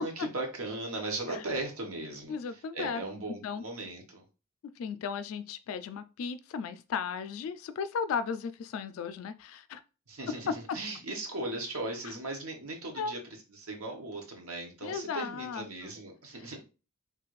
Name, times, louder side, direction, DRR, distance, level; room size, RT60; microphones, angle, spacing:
voice 1, 0.0-2.4 2.7-4.2 10.1-13.2 13.5-16.6, right 2 dB, 90° right, 1.0 m, -38 dB
voice 2, 2.3-3.0 3.4-3.6 4.8-9.8 10.5-10.8 13.0-13.2 14.8-15.9, left 6 dB, 80° left, 0.3 m, -35 dB
3.3 x 2.4 x 3.0 m
head